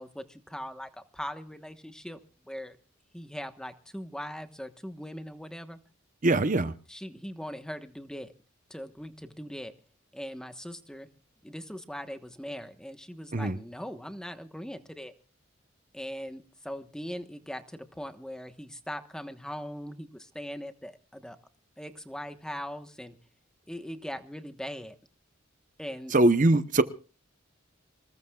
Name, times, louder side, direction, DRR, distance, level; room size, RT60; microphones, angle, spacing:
voice 1, 0.0-2.2 2.5-2.8 3.1-5.8 6.9-8.3 8.7-9.7 10.1-11.1 11.4-15.1 15.9-21.4 21.8-23.2 23.7-25.0 25.8-26.1, equal, 5° left, 1.1 m, -40 dB
voice 2, 6.2-6.7 13.3-13.6 26.1-26.8, right 2 dB, 40° right, 0.8 m, -22 dB
25.5 x 20.5 x 2.3 m
head